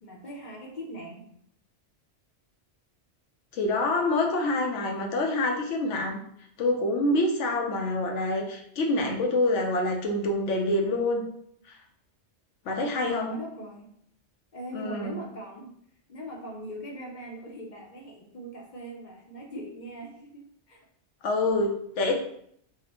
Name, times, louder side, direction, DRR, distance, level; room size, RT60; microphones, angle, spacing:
voice 1, 0.0-1.2 12.8-13.9 14.5-15.7 16.1-20.8, right 1 dB, 50° left, -1 dB, 0.7 m, -41 dB
voice 2, 3.5-6.2 6.6-11.2 12.7-13.4 14.7-15.2 21.2-22.1, left 2 dB, 85° left, 2 dB, 1.0 m, -26 dB
4.8 x 2.1 x 2.9 m, 0.68 s
omnidirectional pair, 1.2 m